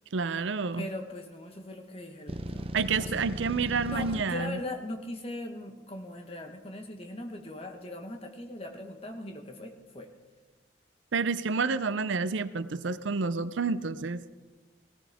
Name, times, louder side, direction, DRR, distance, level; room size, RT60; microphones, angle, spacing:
voice 1, 0.1-0.8 2.7-4.6 11.1-14.2, right 4 dB, 80° right, 14 dB, 0.5 m, -29 dB
voice 2, 0.7-3.2 3.7-10.1, left 1 dB, 30° left, 4 dB, 1.3 m, -40 dB
sound 1, 2.3-4.2, right 1 dB, 30° right, 0.6 m, -37 dB
18.0 x 15.0 x 3.5 m, 1.3 s
head